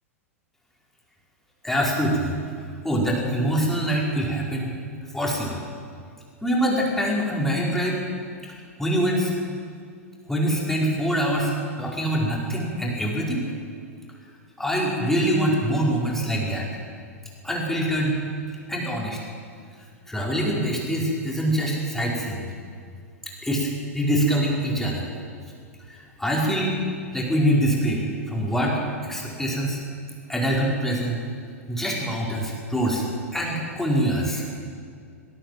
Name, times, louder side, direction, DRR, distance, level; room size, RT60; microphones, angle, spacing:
voice 1, 1.6-2.3 2.8-4.7 5.1-5.6 6.4-8.0 8.4-8.5 8.8-9.3 10.3-13.5 14.6-16.6 17.4-18.2 18.7-19.2 20.1-22.5 23.4-25.1 25.9-26.8 27.1-28.0 28.3-29.8 30.3-31.2 31.7-33.0 33.3-34.4, equal, 5° left, -3 dB, 5.0 m, -24 dB
21.0 x 16.0 x 7.9 m, 2.2 s
figure-of-eight pair, 95°, 8 cm